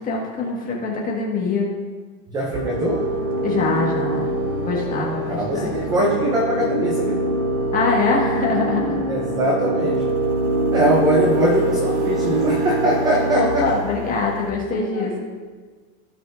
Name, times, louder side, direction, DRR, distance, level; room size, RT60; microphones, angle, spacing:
voice 1, 0.0-1.7 3.4-4.3 4.6-5.7 7.7-9.0 13.4-15.2, left 4 dB, 20° left, -3 dB, 1.5 m, -23 dB
voice 2, 2.3-3.2 5.3-7.2 9.1-10.1 10.7-13.7 14.6-15.2, right 1 dB, 10° right, -1 dB, 0.3 m, -22 dB
sound 1, 2.5-14.5, right 1 dB, 55° right, 1.3 m, -24 dB
16.0 x 6.2 x 2.5 m, 1.5 s
cardioid pair, 180°, 40 cm